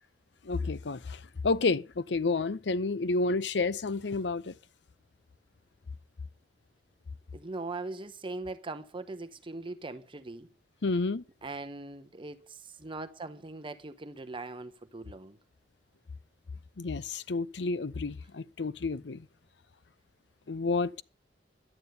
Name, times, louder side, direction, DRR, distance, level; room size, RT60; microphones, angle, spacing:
voice 1, 0.5-4.5 10.8-11.2 16.8-19.2 20.5-21.0, left 3 dB, 75° left, 0.7 m, -30 dB
voice 2, 7.3-10.5 11.4-15.4, right 3 dB, 30° right, 0.8 m, -40 dB
12.0 x 9.5 x 6.7 m
head